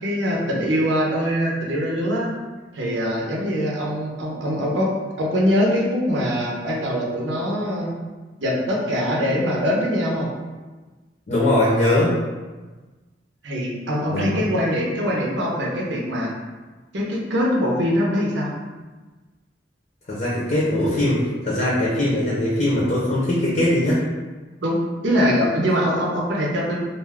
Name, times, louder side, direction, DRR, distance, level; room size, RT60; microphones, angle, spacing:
voice 1, 0.0-2.3 2.7-4.9 5.2-7.9 8.4-10.3 13.4-16.3 16.9-18.5 24.6-26.8, equal, 80° right, -3 dB, 0.7 m, -23 dB
voice 2, 11.3-12.1 14.1-14.4 20.1-24.0, left 1 dB, 40° left, -7 dB, 0.7 m, -21 dB
2.5 x 2.2 x 3.4 m, 1.3 s
head